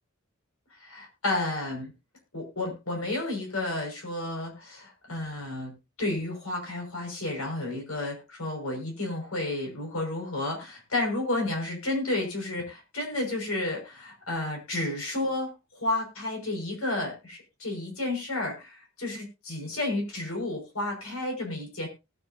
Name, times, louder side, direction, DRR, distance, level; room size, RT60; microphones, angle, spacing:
voice 1, 0.8-1.9 2.3-21.9, left 2 dB, 85° left, 2 dB, 5.7 m, -31 dB
19.0 x 8.7 x 2.7 m, 0.27 s
head